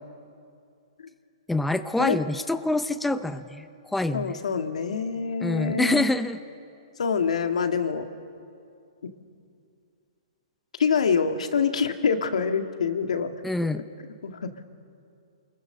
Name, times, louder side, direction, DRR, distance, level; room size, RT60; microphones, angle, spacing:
voice 1, 1.5-4.3 5.4-6.4 13.4-13.8, left 2 dB, 5° left, 10 dB, 0.6 m, -26 dB
voice 2, 4.1-6.1 7.0-8.1 9.0-9.1 10.8-13.3 14.2-14.6, left 6 dB, 80° left, 6 dB, 1.9 m, -25 dB
28.0 x 21.5 x 6.6 m, 2.4 s
hypercardioid pair, 150°, 3 cm